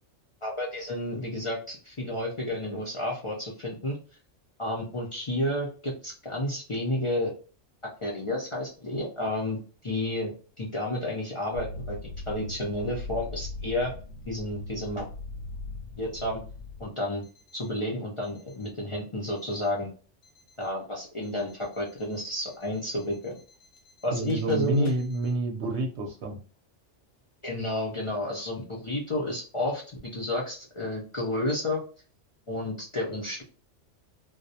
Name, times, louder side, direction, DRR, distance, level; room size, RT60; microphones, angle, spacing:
voice 1, 0.4-4.0 4.6-7.3 8.0-13.9 14.3-15.1 16.0-16.4 16.8-17.2 17.5-19.9 20.6-23.4 24.0-24.9 27.4-31.8 32.5-33.4, left 1 dB, 50° left, -3 dB, 0.4 m, -31 dB
sound 1, 11.5-16.9 17.2-17.7 18.2-18.7 19.2-19.7 20.2-20.7 21.2-25.3, left 2 dB, 75° left, 0.9 m, -41 dB
voice 2, 24.1-26.4, right 2 dB, 70° right, 2 dB, 0.8 m, -28 dB
2.3 x 2.0 x 2.6 m, 0.37 s
omnidirectional pair, 1.3 m